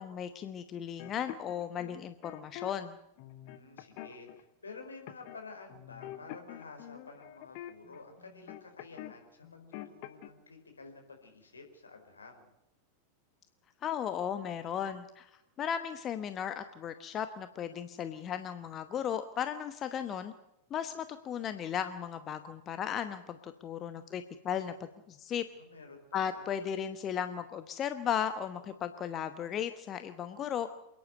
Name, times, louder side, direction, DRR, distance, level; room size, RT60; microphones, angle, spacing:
voice 1, 0.0-3.0 13.8-15.3 15.6-20.3 20.7-25.4 26.1-30.7, left 8 dB, 30° left, 10 dB, 1.1 m, -36 dB
sound 1, 1.0-2.7 3.2-4.4 5.1-5.4 5.7-9.2 9.4-10.3, left 13 dB, 45° left, 1.4 m, -46 dB
voice 2, 3.4-12.5 25.5-26.5, left 4 dB, 75° left, 3 dB, 4.6 m, -51 dB
28.0 x 10.5 x 9.2 m, 0.87 s
figure-of-eight pair, 90°, 0 cm